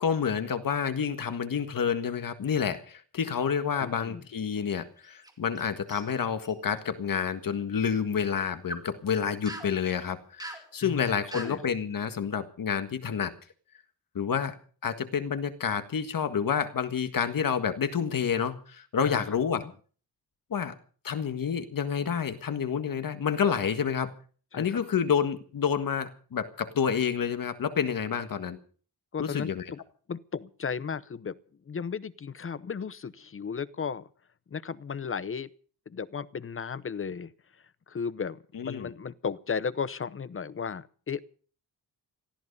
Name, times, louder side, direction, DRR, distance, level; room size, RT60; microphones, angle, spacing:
voice 1, 0.0-13.3 14.1-14.5 14.8-19.6 20.5-20.7 21.0-24.1 24.5-28.6 29.2-29.6 38.5-38.9, left 7 dB, 60° left, 1.7 m, -29 dB
voice 2, 3.8-4.2 10.8-11.6 19.0-19.2 19.5-19.7 24.5-24.8 29.1-29.8 30.1-31.3 31.7-34.1 34.5-35.5 35.9-37.3 37.9-41.3, left 6 dB, 35° left, 0.7 m, -35 dB
sound 1, 5.0-5.6 5.9-6.5 8.4-8.9 9.5-9.7 10.4-10.7 11.3-11.6, right 1 dB, 10° right, 2.6 m, -41 dB
18.5 x 14.5 x 5.4 m
wide cardioid pair, 135°, 38 cm